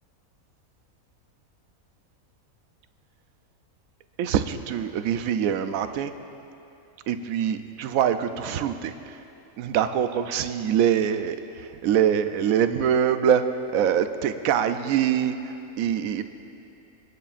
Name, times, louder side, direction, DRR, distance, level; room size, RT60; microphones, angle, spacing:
voice 1, 4.2-6.1 7.1-8.9 9.6-11.4 11.8-13.4 13.7-16.2, right 9 dB, 75° right, 9 dB, 1.0 m, -24 dB
28.5 x 9.9 x 2.5 m, 2.8 s
omnidirectional pair, 1.5 m